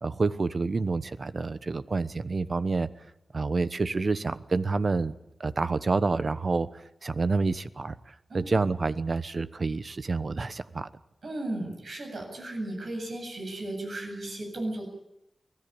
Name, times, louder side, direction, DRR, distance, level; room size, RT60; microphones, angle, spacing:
voice 1, 0.0-2.9 3.3-5.1 5.4-6.7 7.0-7.9 8.3-10.9, right 3 dB, 50° right, 14 dB, 1.0 m, -28 dB
voice 2, 11.2-14.9, right 1 dB, 70° right, 2 dB, 8.0 m, -35 dB
24.0 x 16.0 x 8.8 m, 0.86 s
wide cardioid pair, 80°, 0 cm